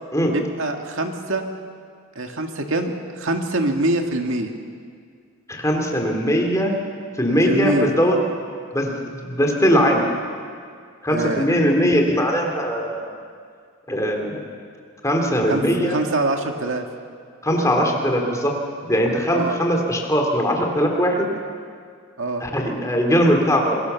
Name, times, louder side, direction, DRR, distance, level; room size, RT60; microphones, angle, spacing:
voice 1, 0.3-1.4 2.2-4.5 7.4-8.0 11.1-11.5 15.5-16.9 19.3-19.6 22.2-22.4, right 2 dB, 65° right, 3 dB, 1.9 m, -24 dB
voice 2, 5.5-6.7 7.2-8.2 8.7-10.1 11.0-13.1 13.9-14.4 15.0-16.0 17.4-18.5 18.8-21.3 22.4-23.8, equal, 15° left, 1 dB, 3.1 m, -20 dB
26.5 x 23.0 x 7.0 m, 2.2 s
head